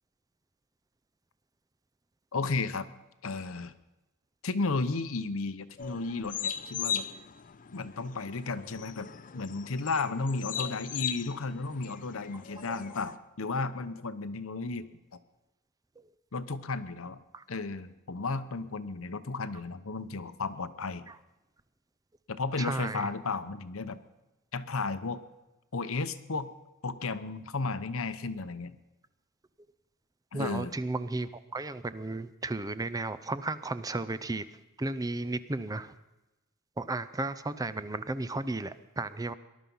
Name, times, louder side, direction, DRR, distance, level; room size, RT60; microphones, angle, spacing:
voice 1, 2.3-2.9 3.2-3.7 4.4-7.1 7.7-15.2 16.3-17.2 17.5-21.1 22.3-24.0 24.5-25.2 25.7-26.5 26.8-28.8 30.3-30.7, left 3 dB, 70° left, 12 dB, 0.9 m, -34 dB
sound 1, 5.8-13.2, left 8 dB, 40° left, 0.5 m, -39 dB
voice 2, 22.6-23.1 30.3-34.5 34.8-35.9 36.8-39.3, right 2 dB, 15° right, 13 dB, 0.5 m, -34 dB
19.5 x 11.5 x 5.5 m, 1.0 s
head